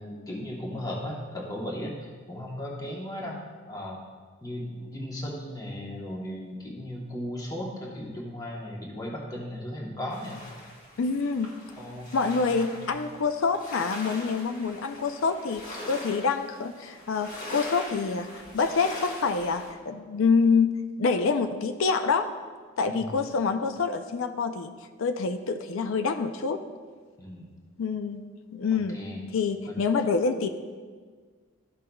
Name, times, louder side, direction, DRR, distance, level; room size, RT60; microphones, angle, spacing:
voice 1, 0.0-4.0 4.4-10.4 11.8-12.7 22.9-23.1 27.2-27.5 28.9-29.2 29.7-29.8, left 1 dB, 15° left, -3 dB, 1.0 m, -36 dB
sound 1, 10.1-19.7, left 1 dB, 40° left, 1.4 m, -42 dB
voice 2, 11.0-11.6 12.1-18.3 18.5-22.4 22.8-24.7 25.0-26.7 27.8-28.2 28.5-29.0 29.3-30.5, left 4 dB, 70° left, 8 dB, 0.4 m, -26 dB
13.0 x 5.5 x 2.3 m, 1.6 s
head